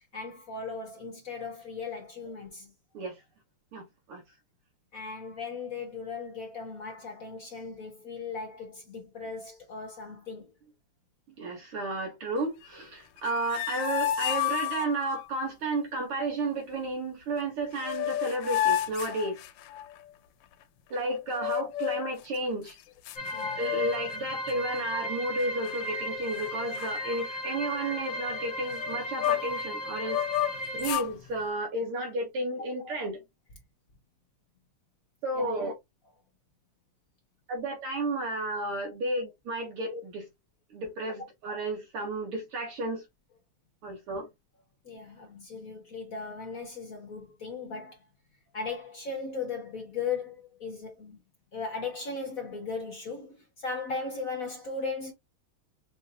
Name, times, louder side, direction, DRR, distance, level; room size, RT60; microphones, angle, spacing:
voice 1, 0.0-2.7 4.9-10.5 21.9-22.0 23.3-23.5 35.3-35.6 44.8-48.0 48.5-51.2 51.5-55.1, left 4 dB, 50° left, 1.1 m, -37 dB
voice 2, 3.7-4.2 11.4-19.4 20.9-22.8 23.6-30.2 30.7-33.2 35.2-35.7 37.5-40.3 40.7-43.0 43.8-44.3, right 2 dB, 80° right, 2.4 m, -32 dB
sound 1, 13.2-15.2 17.4-17.5 17.7-20.0 21.3-22.1 22.7-22.8 23.1-24.2 24.5-24.8 25.4-26.0 26.3-26.5 26.8-29.6 30.0-31.1, left 12 dB, 80° left, 1.4 m, -31 dB
sound 2, 23.2-30.9, left 1 dB, 25° left, 1.4 m, -36 dB
5.6 x 2.7 x 2.7 m
omnidirectional pair, 2.4 m